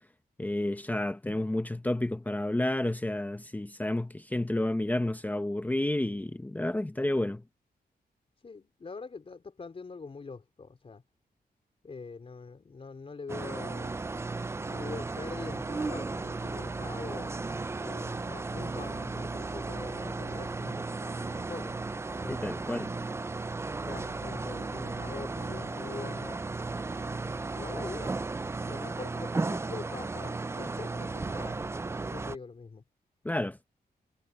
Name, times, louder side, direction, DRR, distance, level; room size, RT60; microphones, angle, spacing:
voice 1, 0.4-7.4 22.3-22.9 33.2-33.6, left 1 dB, 10° left, 0.9 m, -30 dB
voice 2, 8.4-11.0 11.8-14.0 14.6-17.3 17.8-21.7 22.2-22.6 23.8-26.5 27.5-28.2 28.6-31.7 32.0-32.8, left 4 dB, 35° left, 4.5 m, -44 dB
sound 1, 13.3-32.4, right 3 dB, 15° right, 0.4 m, -35 dB
wide cardioid pair, 135°, 16 cm